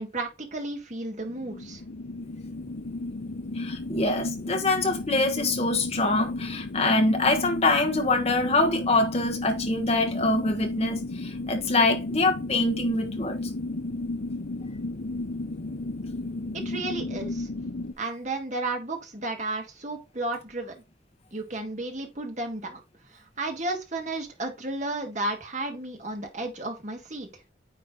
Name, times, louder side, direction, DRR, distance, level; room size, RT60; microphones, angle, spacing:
voice 1, 0.0-1.8 16.5-17.5 18.0-20.8 21.3-22.8 23.1-27.3, right 2 dB, 40° right, 1.6 m, -33 dB
sound 1, 1.3-17.9, left 2 dB, 70° left, 0.7 m, -34 dB
voice 2, 3.5-13.4, left 2 dB, 35° left, 1.4 m, -24 dB
9.5 x 3.3 x 3.8 m
head